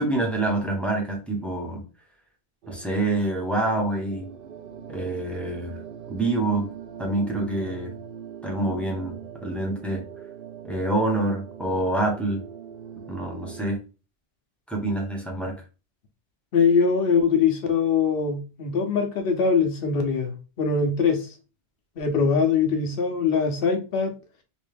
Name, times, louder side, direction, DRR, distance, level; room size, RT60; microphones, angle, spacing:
voice 1, 0.0-1.8 2.7-4.3 4.9-5.8 6.1-6.7 7.0-7.9 8.4-10.0 10.6-12.4 13.1-13.8 14.7-15.5, right 2 dB, ahead, 0.9 m, -26 dB
sound 1, 2.6-13.7, right 8 dB, 65° right, 0.7 m, -41 dB
voice 2, 16.5-20.3 20.6-21.3 22.0-24.1, left 5 dB, 65° left, 1.0 m, -22 dB
3.1 x 3.0 x 3.3 m
omnidirectional pair, 1.1 m